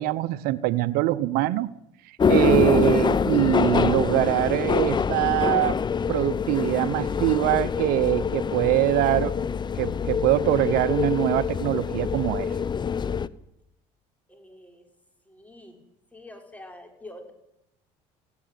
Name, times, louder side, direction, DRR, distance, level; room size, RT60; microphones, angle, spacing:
voice 1, 0.0-1.7 2.3-5.8 6.1-9.3 9.8-12.5, right 15 dB, 70° right, 16 dB, 0.8 m, -23 dB
sound 1, 2.2-13.3, left 6 dB, 30° left, 0.8 m, -25 dB
voice 2, 14.3-14.8 15.3-15.8 16.1-17.3, left 1 dB, 10° left, 4 dB, 6.0 m, -45 dB
19.0 x 16.0 x 9.6 m, 0.83 s
supercardioid pair, 90°, 16 cm